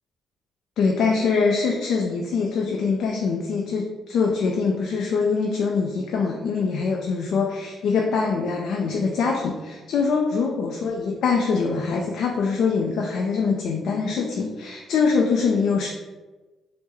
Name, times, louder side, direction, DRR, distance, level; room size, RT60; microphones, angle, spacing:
voice 1, 0.8-15.9, left 5 dB, 75° left, 0 dB, 0.3 m, -23 dB
3.5 x 2.0 x 3.0 m, 1.2 s
cardioid pair, 90°, 0 cm